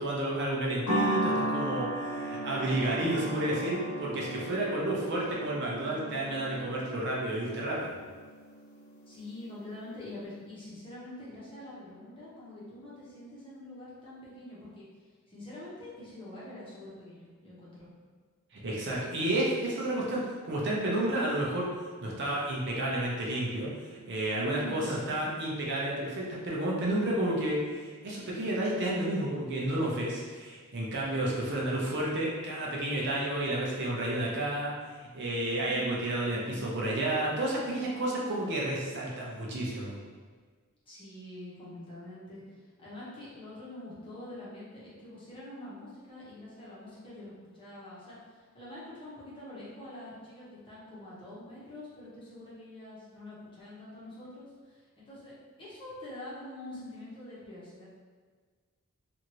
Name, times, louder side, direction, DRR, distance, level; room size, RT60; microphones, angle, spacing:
voice 1, 0.0-7.9 18.5-21.7 22.0-34.7 35.1-40.0, right 1 dB, 50° right, -4 dB, 0.6 m, -31 dB
sound 1, 0.9-9.4, right 1 dB, 70° left, 0.6 m, -35 dB
voice 2, 9.1-14.9 15.3-17.9 24.4-25.3 35.6-36.0 36.3-36.8 40.9-57.8, left 1 dB, 25° left, -9 dB, 0.9 m, -45 dB
2.8 x 2.5 x 3.0 m, 1.5 s
head